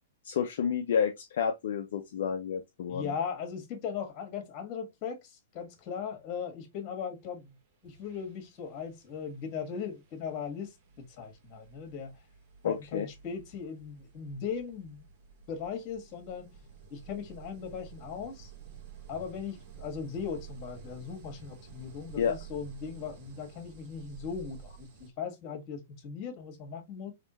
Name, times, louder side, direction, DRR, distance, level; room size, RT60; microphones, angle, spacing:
voice 1, 0.2-3.1 12.6-13.1 22.2-22.4, left 7 dB, 60° left, 0.5 m, -30 dB
voice 2, 2.9-7.5 7.8-10.7 11.2-12.1 12.6-15.1 15.5-16.5 16.9-18.5 19.1-27.1, left 6 dB, 40° left, 1.5 m, -38 dB
sound 1, 7.3-7.5 7.8-25.1, right 7 dB, 50° right, 1.4 m, -51 dB
3.5 x 3.1 x 2.7 m
hypercardioid pair, 115°, 0 cm